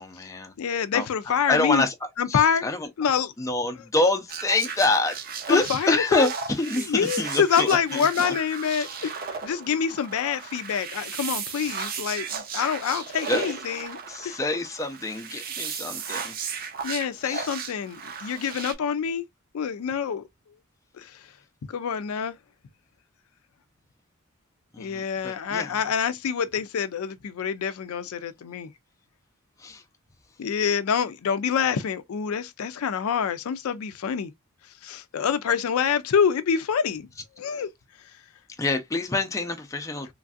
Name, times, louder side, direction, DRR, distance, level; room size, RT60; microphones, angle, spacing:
voice 1, 0.0-0.5 0.9-1.1 1.5-1.9 2.3-2.8 3.4-5.1 5.5-8.1 13.3-13.4 14.1-16.3 17.2-17.5 24.7-25.7 29.6-29.8 38.6-40.1, left 2 dB, 15° left, 0.4 m, -26 dB
voice 2, 0.6-1.9 2.2-2.7 3.0-3.3 3.8-3.9 5.5-6.3 6.8-14.4 16.8-19.2 19.5-20.3 21.0-21.2 21.7-22.3 24.8-28.7 30.4-34.3 34.8-37.1 37.4-37.7, left 7 dB, 85° left, 0.4 m, -26 dB
sound 1, 4.3-18.7, right 6 dB, 45° right, 0.5 m, -35 dB
3.1 x 2.5 x 2.3 m
head